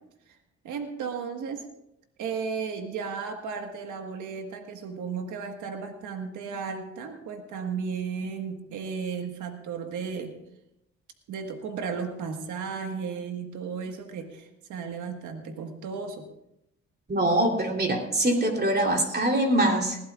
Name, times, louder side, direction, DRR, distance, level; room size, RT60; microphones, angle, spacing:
voice 1, 0.6-1.7 2.2-10.3 11.3-16.3, right 5 dB, 80° right, 5 dB, 1.6 m, -34 dB
voice 2, 17.1-20.0, right 1 dB, 35° right, 2 dB, 3.3 m, -23 dB
20.0 x 16.0 x 2.4 m, 0.83 s
cardioid pair, 90°, 30 cm